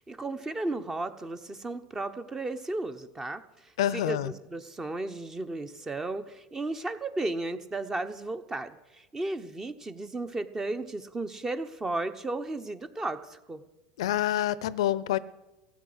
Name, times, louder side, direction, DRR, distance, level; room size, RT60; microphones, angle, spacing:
voice 1, 0.0-13.7, right 2 dB, 15° right, 11 dB, 1.0 m, -34 dB
voice 2, 3.8-4.3 14.0-15.2, left 12 dB, 75° left, 18 dB, 0.6 m, -27 dB
15.5 x 8.5 x 8.0 m, 1.1 s
hypercardioid pair, 100°, 3 cm